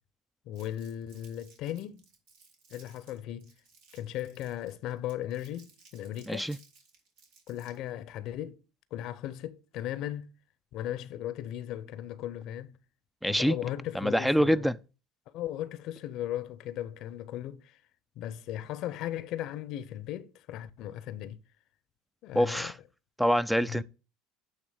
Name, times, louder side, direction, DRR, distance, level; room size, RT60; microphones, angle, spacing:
voice 1, 0.5-2.0 2.7-3.5 3.9-6.5 7.5-8.6 8.9-10.3 10.7-12.8 13.3-14.7 15.3-17.8 18.2-21.4 22.2-22.7 23.7-23.8, left 12 dB, 60° left, 0.6 m, -37 dB
Crumpling crinkling, 0.5-7.9, right 4 dB, 70° right, 2.3 m, -60 dB
voice 2, 6.3-6.6 13.2-13.6 13.9-14.8 22.3-22.8 23.2-23.8, equal, ahead, 0.3 m, -25 dB
9.0 x 3.2 x 6.4 m
hypercardioid pair, 75°, 0 cm